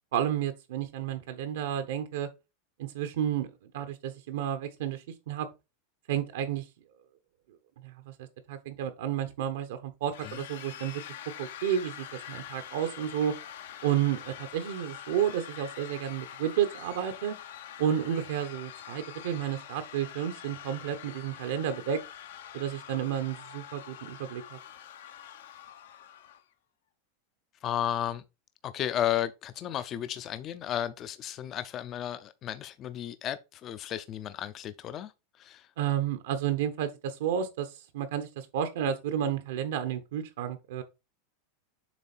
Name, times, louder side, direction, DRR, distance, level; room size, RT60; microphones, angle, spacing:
voice 1, 0.1-2.3 2.8-3.5 3.7-5.5 6.1-6.7 7.8-11.0 11.4-13.4 13.8-17.4 17.8-22.0 22.5-24.6 35.8-40.8, right 9 dB, 75° right, 0.9 m, -31 dB
sound 1, 10.1-26.4, left 10 dB, 85° left, 0.9 m, -45 dB
voice 2, 27.6-28.2 28.6-35.1 35.4-35.7, left 11 dB, 30° left, 0.4 m, -33 dB
7.3 x 3.2 x 4.3 m
supercardioid pair, 160°, 0 cm